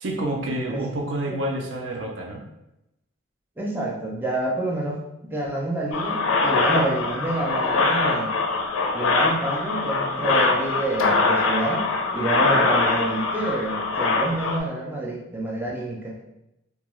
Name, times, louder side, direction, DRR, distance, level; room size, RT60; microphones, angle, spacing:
voice 1, 0.0-2.4, right 1 dB, 65° right, 0 dB, 0.5 m, -28 dB
voice 2, 3.6-8.3 8.9-16.1, right 2 dB, 10° right, -3 dB, 0.3 m, -28 dB
sound 1, 5.9-14.6, left 3 dB, 80° left, 0.4 m, -23 dB
2.3 x 2.2 x 3.0 m, 0.87 s
head